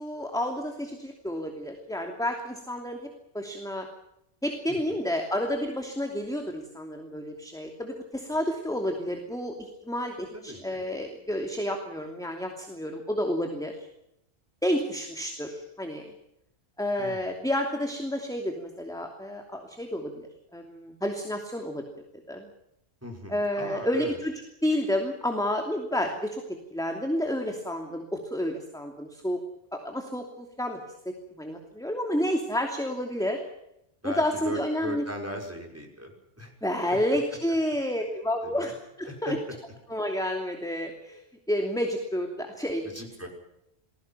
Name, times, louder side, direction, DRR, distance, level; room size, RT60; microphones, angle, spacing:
voice 1, 0.0-3.1 3.3-3.9 4.4-13.9 14.6-16.1 16.8-21.8 22.3-22.5 23.3-24.3 24.6-26.4 26.7-29.4 29.7-30.8 31.0-33.4 34.0-35.0 36.6-38.7 39.0-39.4 39.9-41.2 41.5-42.9, equal, 5° left, 3 dB, 2.8 m, -30 dB
voice 2, 10.3-10.8 17.0-17.2 23.0-24.2 34.0-36.5 38.4-38.7 39.1-39.4 42.9-43.3, equal, 15° right, 2 dB, 5.8 m, -38 dB
29.5 x 20.5 x 5.9 m, 0.80 s
omnidirectional pair, 1.1 m